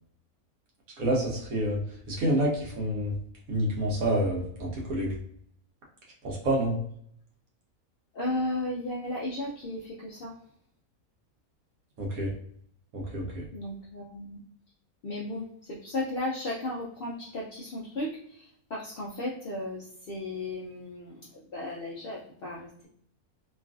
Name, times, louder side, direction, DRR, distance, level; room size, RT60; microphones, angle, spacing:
voice 1, 1.0-1.8 2.1-3.1 3.5-5.1 6.2-6.8 12.0-12.3 12.9-13.4, right 1 dB, 75° right, -2 dB, 1.3 m, -28 dB
voice 2, 8.1-10.3 13.5-14.4 15.0-22.9, left 1 dB, 65° left, -5 dB, 0.5 m, -35 dB
3.0 x 2.4 x 2.4 m, 0.66 s
omnidirectional pair, 1.6 m